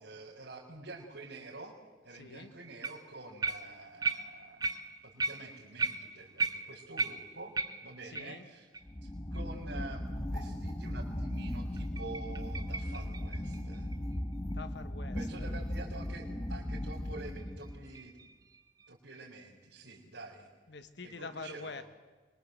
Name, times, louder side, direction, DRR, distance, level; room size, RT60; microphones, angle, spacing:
voice 1, 0.0-1.7 2.0-4.7 5.0-7.5 7.8-8.7 9.0-13.9 15.1-18.3 18.9-20.5 21.0-21.8, right 3 dB, 85° right, -9 dB, 4.5 m, -48 dB
voice 2, 2.1-2.5 8.0-8.5 14.4-15.5 20.7-21.8, left 3 dB, 65° left, 11 dB, 1.2 m, -45 dB
sound 1, 2.8-3.1 3.4-8.4 8.7-8.8 9.3-9.4 9.9-10.0 11.8-14.5 17.4-18.9, right 4 dB, 20° right, 0.8 m, -37 dB
sound 2, 8.8-17.9, left 1 dB, 20° left, 1.1 m, -37 dB
25.0 x 22.5 x 7.9 m, 1.3 s
head